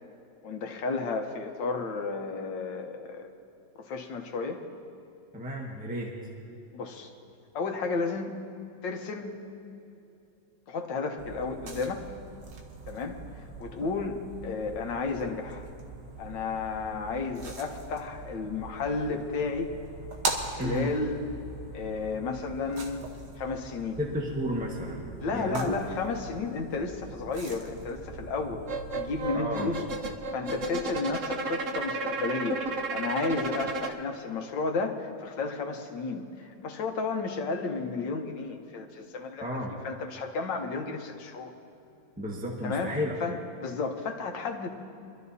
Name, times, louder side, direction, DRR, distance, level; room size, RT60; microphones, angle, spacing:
voice 1, 0.4-3.3 3.8-4.6 6.7-7.1 7.5-8.3 8.8-9.4 10.7-12.0 12.9-15.7 16.2-19.7 20.5-21.2 21.7-23.0 23.4-24.0 25.2-28.6 28.9-29.8 30.3-41.5 42.6-44.7, left 4 dB, 80° left, 4 dB, 1.7 m, -32 dB
voice 2, 5.3-6.1 20.6-20.9 24.0-25.0 25.3-25.7 29.3-29.7 39.4-39.7 42.2-43.2, equal, 5° right, -2 dB, 1.2 m, -32 dB
sound 1, 11.2-29.3, right 3 dB, 75° right, 1.9 m, -41 dB
sound 2, 28.7-33.9, right 2 dB, 55° right, 1.0 m, -33 dB
24.5 x 13.0 x 2.8 m, 2.8 s
omnidirectional pair, 1.9 m